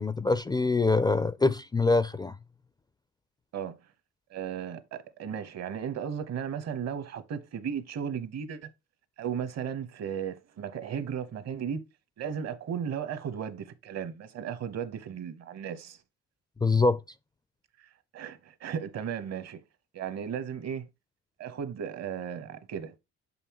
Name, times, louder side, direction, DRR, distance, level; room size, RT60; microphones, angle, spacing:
voice 1, 0.0-2.4 16.6-17.0, left 3 dB, 15° left, 0.4 m, -24 dB
voice 2, 4.3-8.7 9.2-11.8 12.2-16.0 18.1-19.6 19.9-20.9 21.4-23.0, right 8 dB, 60° right, 1.0 m, -35 dB
6.7 x 5.5 x 2.9 m
cardioid pair, 90°, 30 cm